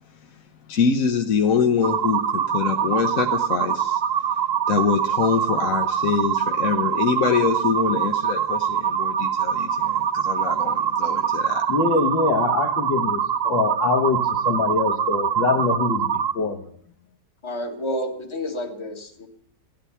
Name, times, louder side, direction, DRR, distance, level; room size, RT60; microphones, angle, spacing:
voice 1, 0.7-4.0 4.7-11.6, left 6 dB, 55° left, 4 dB, 1.2 m, -24 dB
sound 1, 1.8-16.3, right 8 dB, 80° right, 0.5 m, -24 dB
voice 2, 11.7-13.2 13.5-16.1 16.4-16.6, left 4 dB, 80° left, 5 dB, 2.1 m, -23 dB
voice 3, 17.4-19.3, left 1 dB, 15° left, 3 dB, 1.6 m, -30 dB
15.5 x 12.0 x 5.7 m, 0.66 s
omnidirectional pair, 2.0 m